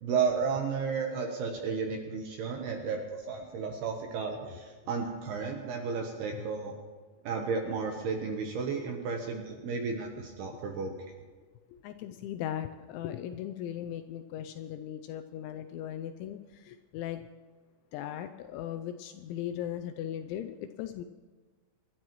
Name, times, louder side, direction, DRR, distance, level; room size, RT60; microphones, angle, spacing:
voice 1, 0.0-6.8 7.2-10.9, right 5 dB, 75° right, 3 dB, 2.5 m, -33 dB
voice 2, 11.7-17.3 17.9-21.0, left 11 dB, 85° left, 9 dB, 2.7 m, -38 dB
25.5 x 12.0 x 3.0 m, 1.4 s
omnidirectional pair, 5.7 m